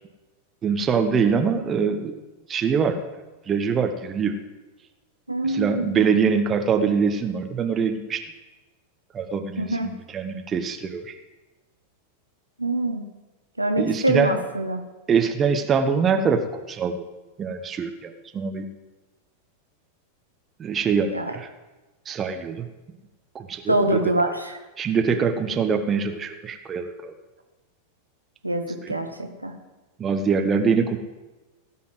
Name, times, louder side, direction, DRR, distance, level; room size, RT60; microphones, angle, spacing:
voice 1, 0.6-2.2 2.5-3.0 3.5-4.4 5.4-8.3 9.1-11.1 13.8-14.3 15.1-16.4 16.7-17.0 17.4-18.7 20.6-21.5 22.1-22.7 23.3-24.0 24.8-27.1 28.8-29.0 30.0-31.0, right 6 dB, 25° right, 7 dB, 1.1 m, -24 dB
voice 2, 5.3-6.1 9.6-9.9 12.6-13.1 13.6-14.8 21.1-21.3 23.7-24.6 28.4-29.5, right 1 dB, 85° right, 4 dB, 1.3 m, -25 dB
17.0 x 5.8 x 7.8 m, 1.1 s
figure-of-eight pair, 90°, 0 cm